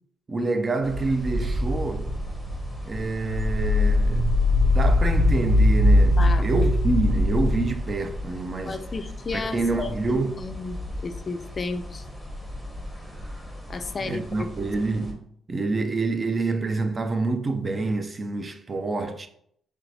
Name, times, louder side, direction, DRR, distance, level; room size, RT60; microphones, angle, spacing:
voice 1, 0.3-2.1 2.8-8.8 9.3-10.4 14.0-19.3, right 3 dB, 30° right, 0.4 m, -27 dB
sound 1, 0.8-15.1, left 1 dB, 5° right, 1.1 m, -38 dB
sound 2, 1.3-7.7, left 1 dB, 80° right, 0.6 m, -21 dB
voice 2, 6.2-6.5 8.7-10.8 11.0-12.1 13.7-14.5, left 4 dB, 35° left, 0.4 m, -33 dB
4.5 x 3.3 x 2.7 m
cardioid pair, 90°, 0 cm